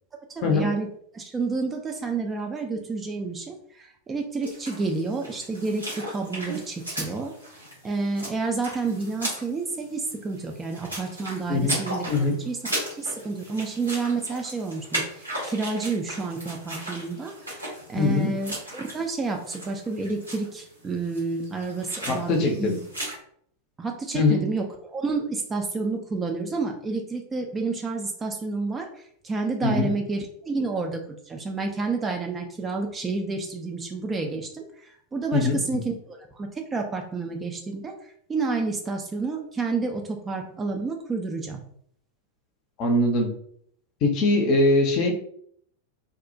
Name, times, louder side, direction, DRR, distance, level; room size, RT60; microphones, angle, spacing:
voice 1, 0.4-0.9 1.1-7.3 7.8-12.1 12.5-12.6 13.0-22.7 23.8-28.9 29.2-37.9 38.3-41.6, right 3 dB, 15° right, 3 dB, 0.3 m, -30 dB
sound 1, 4.4-23.1, right 1 dB, 90° right, 0.9 m, -37 dB
voice 2, 18.0-18.3 22.1-22.8 24.1-24.4 29.6-29.9 35.3-35.6 42.8-43.3 44.0-45.1, left 2 dB, 40° left, 3 dB, 0.5 m, -22 dB
2.3 x 2.0 x 2.6 m, 0.64 s
figure-of-eight pair, 90°, 0 cm